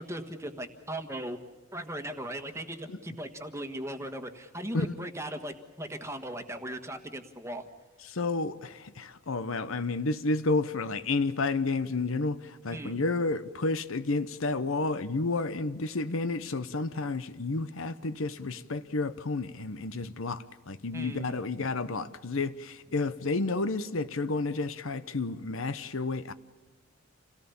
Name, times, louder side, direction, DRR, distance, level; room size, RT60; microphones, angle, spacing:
voice 1, 0.0-1.4 1.7-7.7 12.7-13.0 20.9-21.3, right 1 dB, 15° right, 1.5 m, -38 dB
voice 2, 8.0-26.3, left 3 dB, 70° left, 0.9 m, -31 dB
28.0 x 18.0 x 7.1 m
head